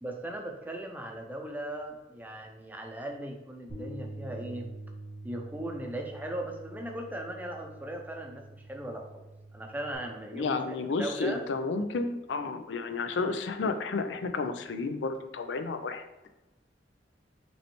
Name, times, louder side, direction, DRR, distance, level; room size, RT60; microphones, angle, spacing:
voice 1, 0.0-4.7 5.2-9.1 9.5-11.4, right 1 dB, 10° right, 2 dB, 0.6 m, -38 dB
Bass guitar, 3.7-9.9, right 2 dB, 35° left, 1.4 m, -45 dB
voice 2, 10.3-16.1, left 3 dB, 85° left, 8 dB, 0.5 m, -31 dB
5.2 x 3.2 x 3.0 m, 1.0 s
head